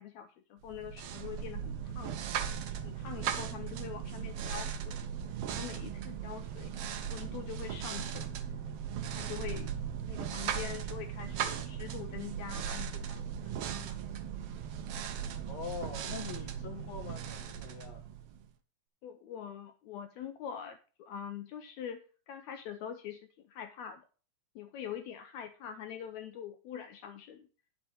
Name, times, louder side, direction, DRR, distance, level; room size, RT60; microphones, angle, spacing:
voice 1, 0.0-2.2 2.8-5.0 5.5-6.7 7.1-8.4 9.1-9.8 10.1-14.0 19.0-24.1 24.6-27.5, left 9 dB, 75° left, 1.8 m, -44 dB
sound 1, 0.7-18.5, right 8 dB, 75° right, 1.4 m, -38 dB
voice 2, 15.5-18.0, left 6 dB, 35° left, 1.4 m, -43 dB
10.0 x 6.2 x 4.7 m
omnidirectional pair, 3.7 m